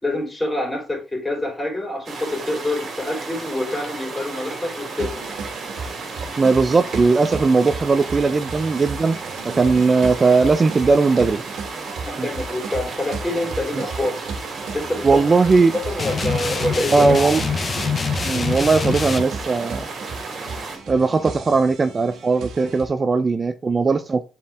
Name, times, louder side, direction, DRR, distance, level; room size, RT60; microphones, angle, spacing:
voice 1, 0.0-5.2 12.0-14.2 14.7-15.2 15.7-17.4, left 1 dB, 15° left, 3.7 m, -26 dB
sound 1, 2.0-20.8, right 3 dB, 50° right, 2.6 m, -34 dB
sound 2, 5.0-22.9, right 4 dB, 75° right, 1.5 m, -35 dB
voice 2, 6.4-9.2 9.4-11.4 12.2-12.3 13.8-13.9 15.0-15.7 16.9-17.4 18.2-19.9 20.9-24.2, right 4 dB, 35° right, 0.5 m, -18 dB
sound 3, 16.0-19.2, left 5 dB, 35° left, 0.6 m, -25 dB
7.3 x 4.5 x 3.6 m
cardioid pair, 90°, 0 cm